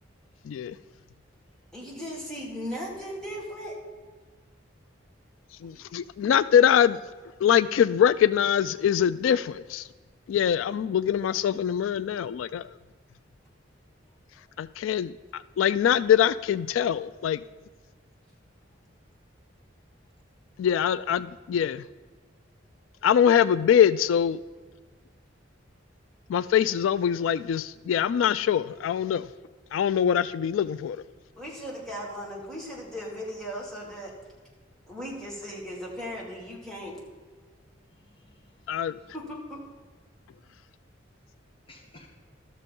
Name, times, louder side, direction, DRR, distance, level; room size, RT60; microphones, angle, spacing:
voice 1, 0.4-0.8 5.6-7.0 7.4-9.9 10.3-12.7 14.6-17.4 20.6-21.8 23.0-24.4 26.3-29.3 29.7-31.0 38.7-39.0, left 9 dB, 90° left, 16 dB, 0.3 m, -23 dB
voice 2, 1.7-3.8 5.7-5.8 31.4-34.1 34.9-37.0 39.1-39.6, equal, 5° left, -5 dB, 2.2 m, -37 dB
voice 3, 14.0-14.6 37.9-39.1 41.7-42.1, left 2 dB, 30° left, 1 dB, 1.1 m, -57 dB
13.0 x 6.6 x 5.3 m, 1.4 s
head